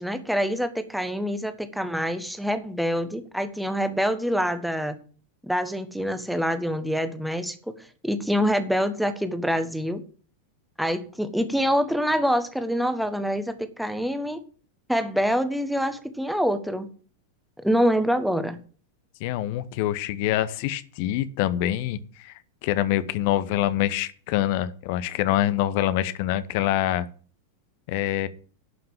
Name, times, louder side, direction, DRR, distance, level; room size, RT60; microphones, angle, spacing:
voice 1, 0.0-5.0 5.4-7.6 8.0-10.0 10.8-14.4 14.9-16.9 17.6-18.6, equal, ahead, 9 dB, 1.4 m, -25 dB
voice 2, 19.2-22.3 22.6-27.0 27.9-28.3, left 13 dB, 45° left, 15 dB, 0.9 m, -25 dB
11.5 x 5.8 x 7.3 m, 0.41 s
figure-of-eight pair, 90°, 0 cm